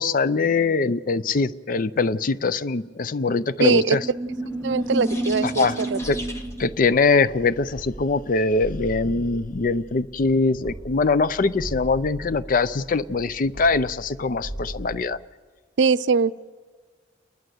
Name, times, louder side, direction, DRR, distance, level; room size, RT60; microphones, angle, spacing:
voice 1, 0.0-4.0 5.4-5.8 6.1-6.2 6.6-15.2, left 4 dB, 50° left, 15 dB, 0.5 m, -22 dB
voice 2, 3.6-4.0 4.6-6.0 15.8-16.5, right 5 dB, 85° right, 16 dB, 0.5 m, -22 dB
sound 1, 3.8-6.7, right 1 dB, 15° left, 1.7 m, -29 dB
sound 2, 6.0-15.0, right 1 dB, 65° left, 5.9 m, -39 dB
29.5 x 11.5 x 7.8 m, 1.5 s
head